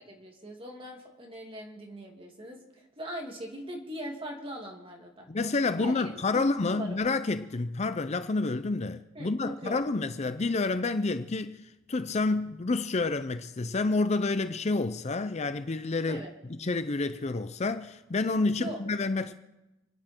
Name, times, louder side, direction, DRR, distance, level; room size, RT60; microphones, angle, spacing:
voice 1, 0.1-5.3 5.8-6.0 6.3-7.0 9.1-9.8 16.1-16.3 18.6-18.8, equal, 30° right, 2.7 m, -40 dB
voice 2, 5.3-11.6 11.9-16.2 16.6-19.3, left 3 dB, 35° left, 0.5 m, -29 dB
29.5 x 9.9 x 4.5 m
head